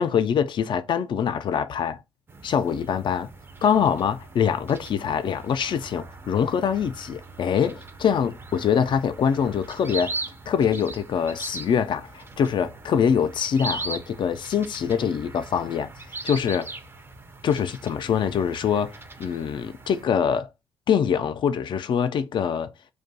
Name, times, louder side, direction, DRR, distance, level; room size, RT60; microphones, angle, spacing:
voice 1, 0.0-2.0 2.4-3.3 3.6-10.1 10.5-15.9 16.2-16.7 17.4-18.9 19.2-20.5 20.9-22.7, left 7 dB, 55° left, 0.4 m, -24 dB
sound 1, 2.3-20.1, right 3 dB, 25° right, 0.5 m, -40 dB
2.5 x 2.2 x 2.6 m
supercardioid pair, 60°, 10 cm